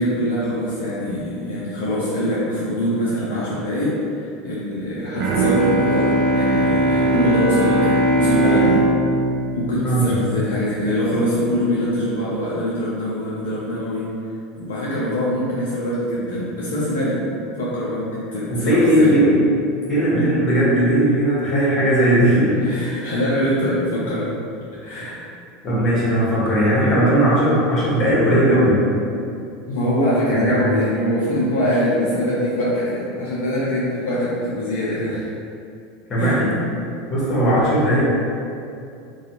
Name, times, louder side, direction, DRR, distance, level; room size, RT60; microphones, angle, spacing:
voice 1, 0.0-8.9 9.5-14.1 14.6-17.2 17.6-19.2 22.6-24.4 24.7-25.2 29.7-35.3 36.2-36.4, equal, 75° left, -8 dB, 0.5 m, -23 dB
Bowed string instrument, 5.2-10.8, right 1 dB, 55° right, 0.4 m, -19 dB
voice 2, 9.8-10.1 18.5-19.5 19.9-22.6 24.9-25.1 25.6-28.8 30.3-30.5 36.1-36.5 37.1-38.0, right 1 dB, 35° left, -8 dB, 1.1 m, -17 dB
2.4 x 2.3 x 2.8 m, 2.5 s
hypercardioid pair, 85°, 0 cm